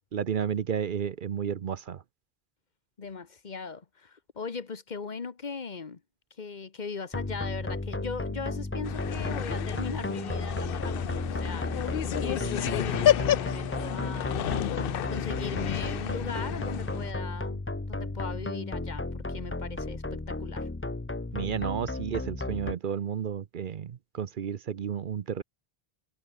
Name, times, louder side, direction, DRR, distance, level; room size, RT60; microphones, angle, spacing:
voice 1, 0.1-2.0 21.3-25.4, right 8 dB, 60° right, 0.8 m, -32 dB
voice 2, 3.0-6.0 6.4-20.7, left 5 dB, 50° left, 1.2 m, -39 dB
sound 1, 7.1-22.7, left 2 dB, 15° left, 0.7 m, -34 dB
sound 2, 8.8-17.1, left 11 dB, 70° left, 0.8 m, -31 dB
omnidirectional pair, 1.0 m